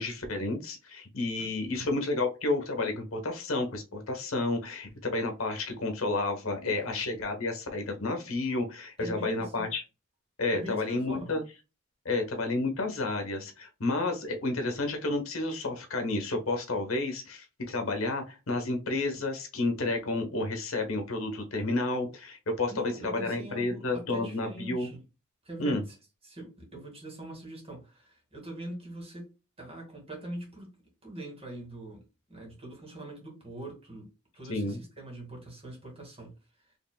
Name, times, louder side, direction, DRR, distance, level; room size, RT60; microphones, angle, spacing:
voice 1, 0.0-9.8 10.4-11.4 12.0-24.9 25.6-25.8 34.5-34.8, left 2 dB, 70° left, 1.1 m, -31 dB
voice 2, 6.6-7.0 9.0-9.7 10.5-11.3 22.7-25.0 25.4-25.8 26.2-29.3 29.6-30.7 31.0-34.1 34.3-36.3 36.7-36.8, right 1 dB, 25° right, 1.9 m, -43 dB
5.1 x 3.1 x 2.2 m
head